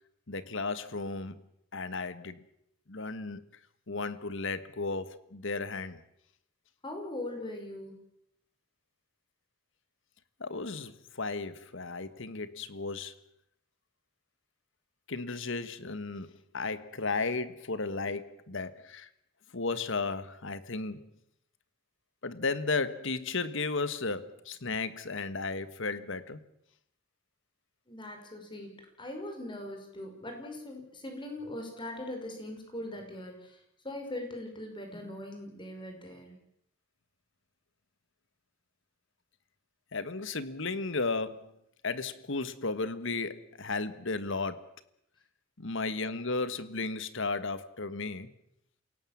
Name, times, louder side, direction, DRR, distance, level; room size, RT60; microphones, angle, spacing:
voice 1, 0.3-1.4 1.7-2.4 2.9-3.4 3.9-6.0 10.4-13.1 15.1-19.1 19.5-21.1 22.2-26.4 39.9-41.5 41.8-44.6 45.6-48.3, left 3 dB, 65° left, 1.6 m, -34 dB
voice 2, 6.8-8.0 27.9-33.6 33.8-36.4, left 1 dB, 25° left, 5.5 m, -41 dB
28.0 x 17.5 x 7.5 m
head